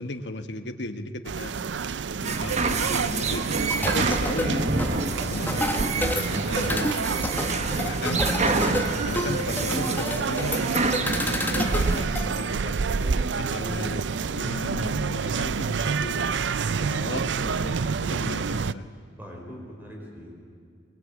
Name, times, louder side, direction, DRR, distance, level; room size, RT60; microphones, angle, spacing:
voice 1, 0.0-1.5 2.2-3.4 3.8-4.7 5.3-6.9 7.7-10.6 11.0-12.7 13.4-14.0 14.3-16.3 16.7-18.9, left 1 dB, 70° left, 8 dB, 1.5 m, -35 dB
sound 1, 1.2-18.7, right 5 dB, 80° right, 0.5 m, -28 dB
sound 2, 2.2-12.0, right 3 dB, 40° right, 1.4 m, -29 dB
sound 3, 3.7-12.3, left 1 dB, 10° left, 1.4 m, -30 dB
voice 2, 8.7-9.6 12.9-14.5 19.2-20.3, equal, 10° right, -1 dB, 5.2 m, -40 dB
23.0 x 22.5 x 8.8 m, 2.3 s
head